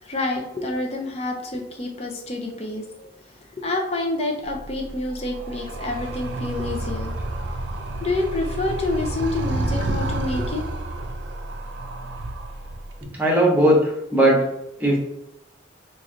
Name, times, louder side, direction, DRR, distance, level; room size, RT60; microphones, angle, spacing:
voice 1, 0.0-3.2 3.5-7.6 8.0-10.6, left 2 dB, 30° left, 1 dB, 0.6 m, -28 dB
Animal, 4.4-13.0, right 2 dB, 65° right, 0.4 m, -30 dB
voice 2, 13.2-14.4 14.8-15.0, right 1 dB, 10° right, -3 dB, 0.9 m, -18 dB
3.1 x 2.5 x 3.8 m, 0.84 s
head